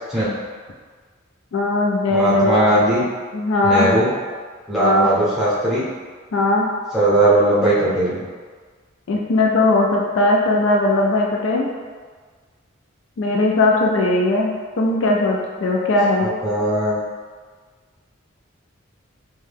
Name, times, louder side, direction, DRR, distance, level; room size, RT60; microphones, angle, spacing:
voice 1, 1.5-2.6 3.3-3.9 4.8-5.1 6.3-6.7 9.1-11.7 13.2-16.3, left 2 dB, 65° left, -1 dB, 0.4 m, -18 dB
voice 2, 2.1-3.0 3.6-4.1 4.7-5.9 6.9-8.2 16.2-17.0, right 1 dB, ahead, -11 dB, 0.8 m, -18 dB
2.7 x 2.2 x 3.3 m, 1.5 s
head